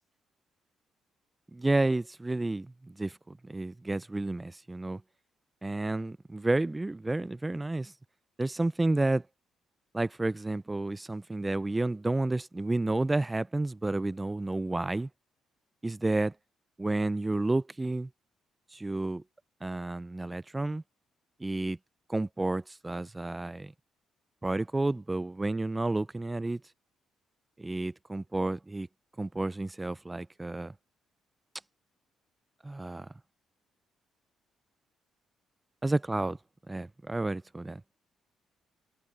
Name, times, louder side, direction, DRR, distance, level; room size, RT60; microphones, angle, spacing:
voice 1, 1.5-5.0 5.6-7.9 8.4-9.2 9.9-15.1 15.8-16.3 16.8-18.1 18.7-19.2 19.6-20.8 21.4-21.8 22.1-23.7 24.4-26.6 27.6-28.9 29.2-30.7 32.6-33.1 35.8-36.4 36.7-37.8, right 2 dB, 15° right, 0.4 m, -31 dB
cardioid pair, 90°, 0 cm